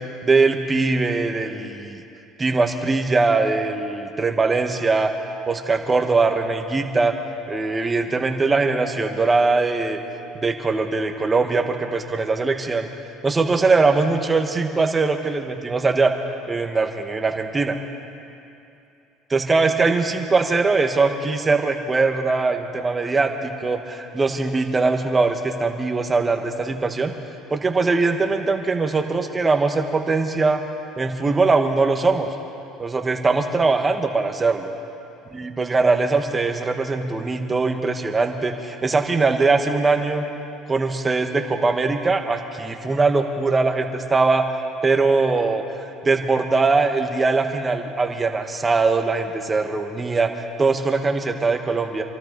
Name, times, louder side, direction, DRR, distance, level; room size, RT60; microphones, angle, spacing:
voice 1, 0.2-2.0 2.4-5.1 5.5-7.1 7.5-10.0 10.3-12.9 13.2-16.1 16.5-17.8 19.3-27.1 27.5-30.6 31.0-32.3 32.8-34.7 35.3-40.2 40.7-44.4 44.8-50.3 50.6-52.0, right 3 dB, 25° right, 4 dB, 1.6 m, -21 dB
27.0 x 13.0 x 4.1 m, 2.7 s
supercardioid pair, 80°, 0 cm